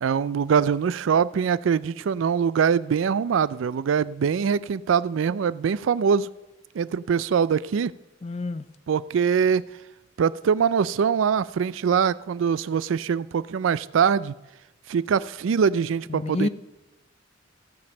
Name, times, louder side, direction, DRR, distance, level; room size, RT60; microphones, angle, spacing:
voice 1, 0.0-6.3 6.8-7.9 8.9-9.6 10.2-14.3 14.9-16.5, right 7 dB, 75° right, 0.4 m, -23 dB
voice 2, 8.2-8.7 16.1-16.5, left 2 dB, 30° left, 0.4 m, -28 dB
15.5 x 5.3 x 6.8 m
head